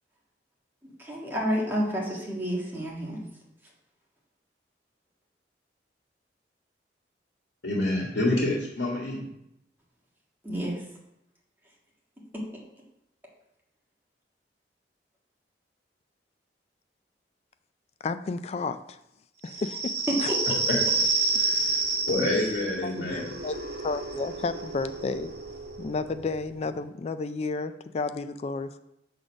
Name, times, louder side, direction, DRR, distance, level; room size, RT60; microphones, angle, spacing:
voice 1, 0.8-3.2 10.4-10.8 20.1-20.6, equal, 10° right, -4 dB, 1.7 m, -30 dB
voice 2, 7.6-9.2 20.7-20.8 21.4-23.3, left 1 dB, 85° left, -2 dB, 1.6 m, -28 dB
voice 3, 18.0-19.0 19.4-19.9 20.2-20.3 22.8-23.6 23.8-25.3 25.8-28.8, left 3 dB, 35° left, 12 dB, 0.3 m, -32 dB
sound 1, 19.5-26.7, right 3 dB, 65° right, 1.8 m, -30 dB
6.5 x 3.9 x 6.2 m, 0.82 s
head